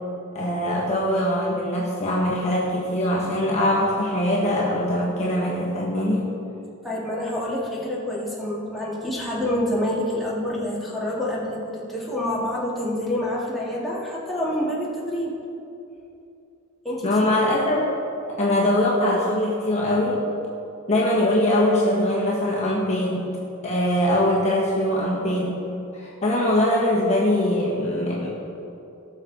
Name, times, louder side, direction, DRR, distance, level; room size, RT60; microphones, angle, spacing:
voice 1, 0.3-6.3 17.0-18.0 18.3-20.2 20.9-23.3 23.6-25.6 25.9-28.3, left 1 dB, 30° left, -5 dB, 1.5 m, -22 dB
voice 2, 6.8-15.4 16.8-17.2, left 1 dB, ahead, -8 dB, 2.2 m, -27 dB
18.5 x 6.2 x 4.1 m, 2.7 s
head